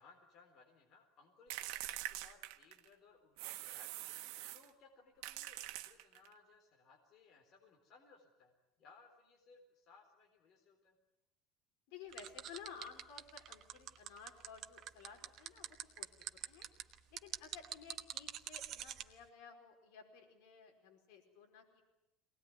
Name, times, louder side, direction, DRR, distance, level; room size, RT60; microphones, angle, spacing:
voice 1, 0.0-8.5 8.8-11.0, left 4 dB, 35° left, 2 dB, 3.9 m, -64 dB
sound 1, 1.5-2.9 3.4-4.7 5.2-6.3, right 15 dB, 70° right, 1.3 m, -45 dB
voice 2, 11.9-16.1 16.5-16.7 17.1-21.8, left 6 dB, 70° left, 4 dB, 4.7 m, -55 dB
sound 2, 12.1-19.0, right 10 dB, 35° right, 1.2 m, -45 dB
24.0 x 19.0 x 9.7 m, 0.87 s
cardioid pair, 175°, 0 cm